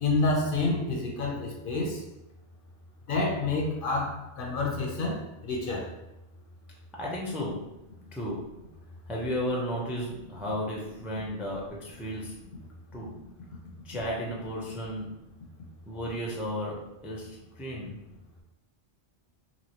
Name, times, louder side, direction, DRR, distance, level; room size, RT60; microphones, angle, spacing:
voice 1, 0.0-2.0 3.1-5.9, left 3 dB, 60° left, 0 dB, 0.7 m, -28 dB
voice 2, 7.0-7.6 8.1-8.4 9.1-12.4 12.9-13.1 13.8-15.2 15.9-18.0, equal, ahead, -3 dB, 0.4 m, -34 dB
3.0 x 2.7 x 2.8 m, 0.93 s
omnidirectional pair, 1.1 m